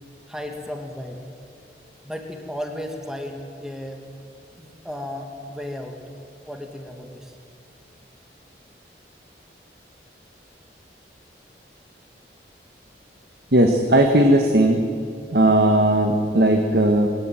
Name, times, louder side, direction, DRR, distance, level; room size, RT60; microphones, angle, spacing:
voice 1, 0.3-1.2 2.0-4.0 4.5-6.0 6.5-7.4, left 1 dB, 5° right, 3 dB, 2.0 m, -34 dB
voice 2, 13.5-14.8 15.3-17.1, right 1 dB, 65° right, 4 dB, 1.6 m, -17 dB
22.0 x 19.0 x 9.2 m, 2.3 s
head